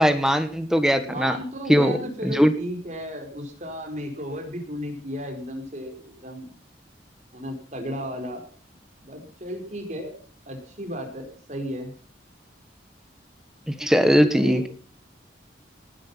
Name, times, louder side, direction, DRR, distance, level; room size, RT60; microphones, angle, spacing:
voice 1, 0.0-1.4 1.7-2.5 13.7-14.7, equal, 5° right, 9 dB, 1.5 m, -20 dB
voice 2, 1.0-6.5 7.3-8.4 9.0-10.2 10.5-11.9 14.3-14.6, equal, 40° right, 4 dB, 5.0 m, -34 dB
19.0 x 10.5 x 5.7 m, 0.43 s
head